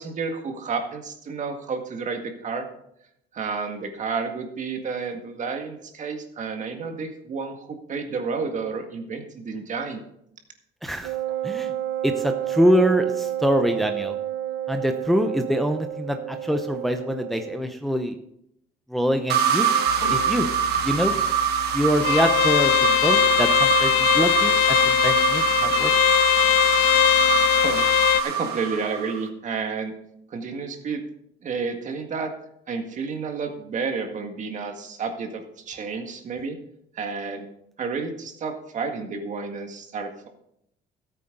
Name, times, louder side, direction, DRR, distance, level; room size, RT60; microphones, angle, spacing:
voice 1, 0.0-2.7 3.3-10.0 27.5-27.9 28.2-29.9 30.3-31.0 31.4-32.3 32.7-36.6 36.9-37.5 37.8-40.3, right 5 dB, 45° right, 5 dB, 1.9 m, -31 dB
voice 2, 10.8-11.1 11.4-11.7 12.0-14.1 14.7-18.1 18.9-19.7 20.1-20.5 20.8-21.1 21.7-22.8 23.0-25.9, equal, ahead, 6 dB, 0.8 m, -24 dB
Wind instrument woodwind instrument, 11.0-17.7, right 12 dB, 90° right, 0.7 m, -30 dB
sound 1, 19.3-29.3, right 7 dB, 75° right, 1.4 m, -24 dB
sound 2, 19.9-28.2, left 13 dB, 85° left, 0.5 m, -21 dB
13.5 x 8.7 x 3.9 m, 0.75 s
cardioid pair, 110°, 17 cm